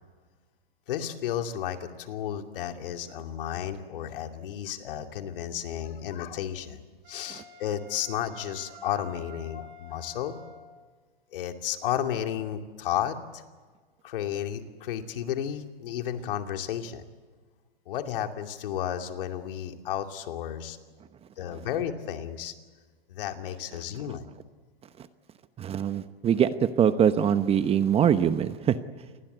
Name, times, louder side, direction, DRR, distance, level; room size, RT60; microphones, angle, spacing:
voice 1, 0.9-10.3 11.3-13.4 14.0-17.0 17.9-20.8 21.4-22.5 23.1-24.2, left 10 dB, 65° left, 5 dB, 2.6 m, -33 dB
Wind instrument woodwind instrument, 7.0-10.8, left 1 dB, 60° right, 4.5 m, -49 dB
voice 2, 25.6-28.8, right 8 dB, 20° right, 12 dB, 0.9 m, -23 dB
28.0 x 20.5 x 8.1 m, 1.4 s
hypercardioid pair, 130°, 29 cm